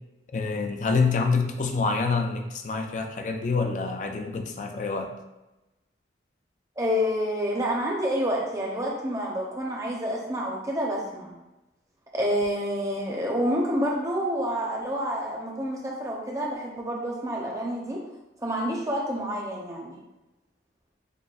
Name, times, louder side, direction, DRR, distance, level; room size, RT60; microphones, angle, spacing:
voice 1, 0.3-5.2, left 4 dB, 45° left, 4 dB, 0.4 m, -26 dB
voice 2, 6.8-11.4 12.1-18.0 18.4-20.0, equal, 20° right, -2 dB, 0.6 m, -28 dB
6.6 x 2.2 x 2.3 m, 1.0 s
head